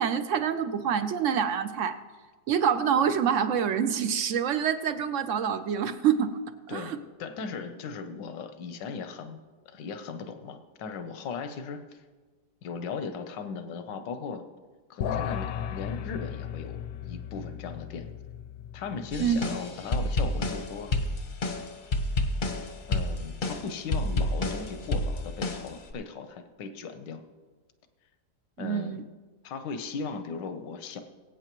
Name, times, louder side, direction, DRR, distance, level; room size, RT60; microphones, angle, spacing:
voice 1, 0.0-2.0 2.5-6.4 6.7-7.0 19.2-19.4 28.6-29.0, right 8 dB, 70° right, 11 dB, 0.7 m, -26 dB
voice 2, 7.2-9.4 9.7-12.0 12.6-14.4 14.9-18.1 18.7-20.9 22.9-27.2 28.6-29.0 29.4-31.0, left 5 dB, 85° left, 8 dB, 1.5 m, -37 dB
sound 1, 15.0-20.5, left 9 dB, 70° left, 1.1 m, -36 dB
sound 2, 19.1-25.9, left 2 dB, 40° left, 0.7 m, -30 dB
22.0 x 8.6 x 3.0 m, 1.4 s
omnidirectional pair, 1.9 m